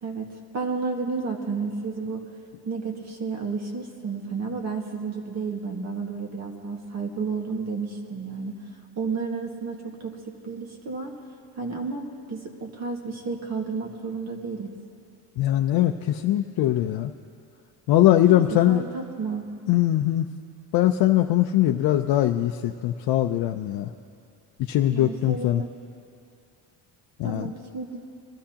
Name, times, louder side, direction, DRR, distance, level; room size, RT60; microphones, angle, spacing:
voice 1, 0.0-2.3 2.6-8.5 8.9-11.2 11.6-14.7 18.2-19.5 24.9-25.7 27.2-28.0, right 4 dB, 40° right, 1 dB, 1.8 m, -32 dB
voice 2, 15.4-17.1 17.9-18.8 19.7-20.3 20.7-23.9 24.6-25.6 27.2-27.5, left 13 dB, 65° left, 4 dB, 0.6 m, -21 dB
23.0 x 12.5 x 2.9 m, 2.4 s
cardioid pair, 110°, 40 cm